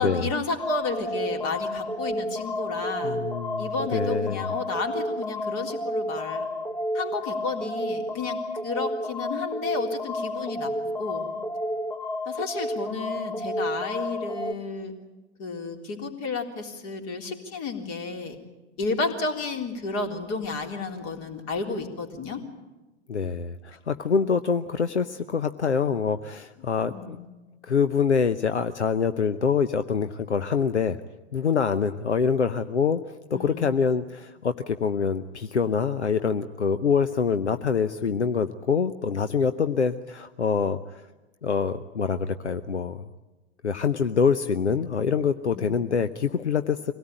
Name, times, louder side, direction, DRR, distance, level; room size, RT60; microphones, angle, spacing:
voice 1, 0.0-3.2 3.6-6.5 6.9-11.3 12.3-14.9 15.4-18.4 18.8-22.4 26.9-27.3 33.3-33.8 45.5-45.8, left 3 dB, 45° left, 3 dB, 3.6 m, -32 dB
sound 1, 0.6-14.5, equal, 10° left, 0.9 m, -31 dB
voice 2, 3.0-4.5 23.1-27.2 27.6-31.0 31.3-33.0 33.3-41.0 41.4-43.1 43.6-46.9, left 6 dB, 85° left, 10 dB, 0.8 m, -25 dB
24.5 x 17.5 x 9.0 m, 1.1 s
figure-of-eight pair, 95°, 34 cm